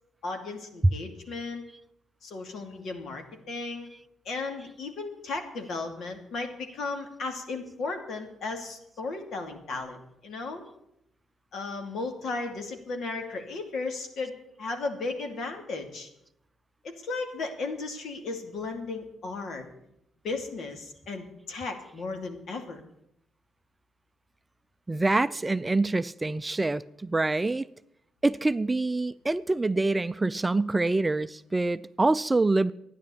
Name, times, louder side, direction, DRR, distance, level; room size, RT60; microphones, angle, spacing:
voice 1, 0.2-1.6 2.2-3.9 4.2-10.0 10.2-10.6 11.5-16.1 16.8-19.7 20.2-22.8, left 3 dB, 65° left, 2.6 m, -35 dB
voice 2, 24.9-27.7 28.2-32.7, right 2 dB, 20° right, 0.4 m, -25 dB
12.5 x 10.0 x 8.6 m
cardioid pair, 90°, 0 cm